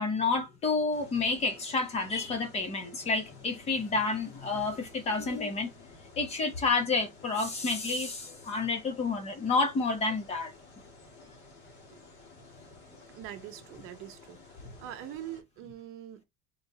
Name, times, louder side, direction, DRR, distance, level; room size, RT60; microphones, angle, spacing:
voice 1, 0.0-5.8 6.2-10.5 14.6-14.7, left 3 dB, 20° left, 0.8 m, -29 dB
sound 1, 0.9-15.4, left 3 dB, 40° left, 1.9 m, -54 dB
voice 2, 13.1-14.4 14.8-16.2, right 12 dB, 50° right, 0.7 m, -43 dB
3.9 x 3.3 x 2.7 m
cardioid pair, 180°, 29 cm